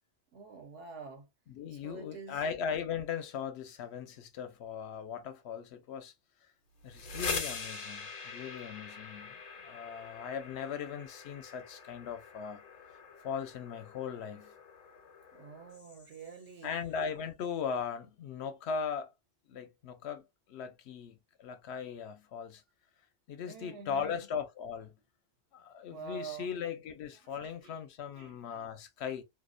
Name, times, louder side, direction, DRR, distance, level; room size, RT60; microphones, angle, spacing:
voice 1, 0.3-1.3 1.7-2.4 15.3-16.7 23.4-24.3 25.9-26.5 27.2-27.8 28.2-28.7, right 5 dB, 80° right, 1.1 m, -47 dB
voice 2, 1.5-6.1 6.8-12.6 13.2-14.5 16.6-19.1 19.5-20.2 20.5-22.6 23.3-24.9 25.5-29.2, left 7 dB, 70° left, 0.8 m, -38 dB
sound 1, 6.8-16.5, left 4 dB, 45° left, 0.6 m, -43 dB
2.5 x 2.0 x 2.4 m
omnidirectional pair, 1.2 m